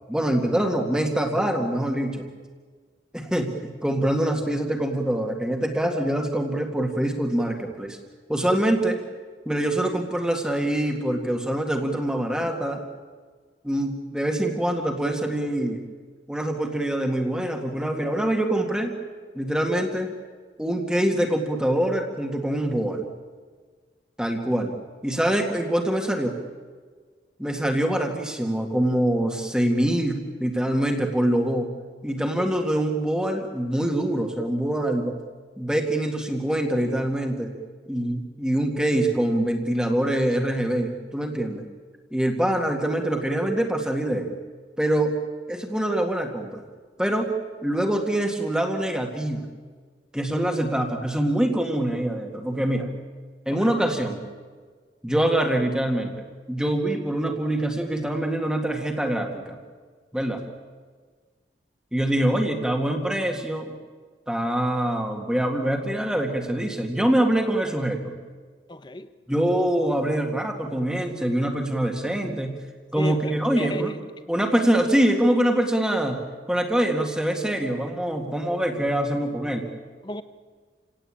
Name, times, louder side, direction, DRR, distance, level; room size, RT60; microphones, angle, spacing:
voice 1, 0.1-2.3 3.1-8.0 8.3-9.0 9.5-12.8 13.6-15.8 16.3-19.0 19.4-20.1 20.6-23.1 24.2-24.8 25.0-26.3 27.4-31.7 32.0-35.1 35.6-37.5 37.9-41.6 42.1-44.3 44.8-45.1 45.5-46.6 47.0-47.3 47.6-49.4 50.1-52.9 53.5-54.2 55.0-59.6 60.1-60.4 61.9-63.7 64.3-68.2 69.3-72.6 72.9-73.9 74.3-76.2 76.5-79.7, right 1 dB, 5° right, 1.9 m, -24 dB
voice 2, 68.7-69.1 73.0-73.9 80.0-80.2, left 1 dB, 25° left, 1.0 m, -34 dB
28.0 x 17.5 x 8.7 m
head